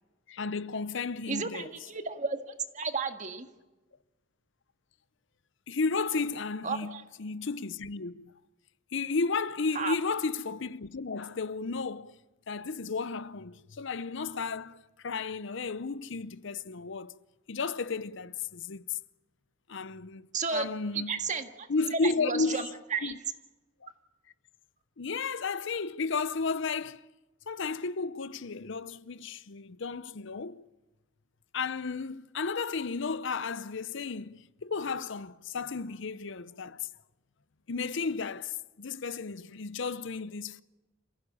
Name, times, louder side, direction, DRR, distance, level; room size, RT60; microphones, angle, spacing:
voice 1, 0.3-1.7 5.7-8.3 8.9-12.1 12.5-17.1 17.5-19.0 19.7-21.2 21.7-22.6 23.0-23.2 23.8-23.9 25.0-27.0 27.5-30.6 31.5-36.9 37.7-40.6, left 4 dB, 65° left, 0.7 m, -33 dB
voice 2, 1.3-2.4 2.7-3.5 6.6-7.0 9.8-9.9 20.3-20.7 20.9-21.7 22.0-23.2, right 5 dB, 40° right, 1.8 m, -33 dB
28.0 x 16.0 x 8.6 m
head